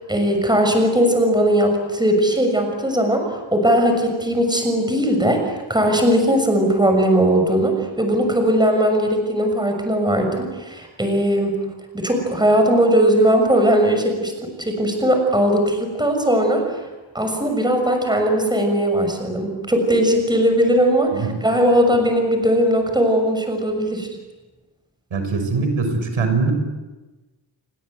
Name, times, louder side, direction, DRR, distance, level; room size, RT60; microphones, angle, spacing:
voice 1, 0.1-11.5 11.9-14.3 14.6-16.6 17.1-24.1, equal, 10° right, 4 dB, 6.5 m, -19 dB
voice 2, 25.1-26.5, right 4 dB, 85° right, 6 dB, 6.4 m, -22 dB
30.0 x 24.5 x 8.2 m, 1.2 s
wide cardioid pair, 155°, 47 cm